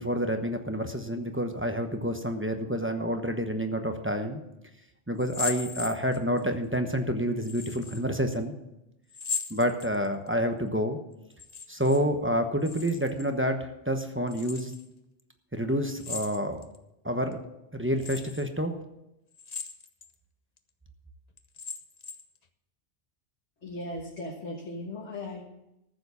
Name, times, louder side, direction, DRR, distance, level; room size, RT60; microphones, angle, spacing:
voice 1, 0.0-4.4 5.1-8.5 9.5-11.0 11.7-14.7 15.5-16.6 17.0-17.4 17.7-18.7, equal, 10° right, 5 dB, 1.0 m, -28 dB
sound 1, 5.2-6.4 7.4-8.0 9.1-10.3 11.3-12.0 12.3-13.3 14.3-14.9 16.0-16.8 17.3-17.4 18.0-18.5 19.3-20.1 20.6-20.7 21.4-22.4, left 5 dB, 40° left, 0.8 m, -38 dB
voice 2, 23.6-25.4, left 2 dB, 75° left, -2 dB, 1.8 m, -37 dB
14.0 x 7.1 x 7.0 m, 0.89 s
omnidirectional pair, 1.2 m